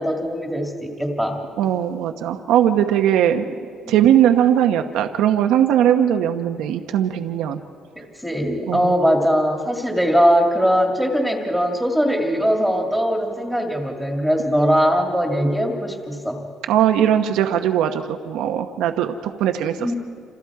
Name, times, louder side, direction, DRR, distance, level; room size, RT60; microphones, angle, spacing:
voice 1, 0.0-1.4 3.8-4.0 8.0-16.4 19.8-20.0, equal, ahead, 2 dB, 2.0 m, -20 dB
voice 2, 1.6-3.5 3.9-7.6 8.7-8.9 16.7-19.9, right 10 dB, 80° right, 6 dB, 1.0 m, -19 dB
28.0 x 27.5 x 4.8 m, 2.3 s
cardioid pair, 160°, 0 cm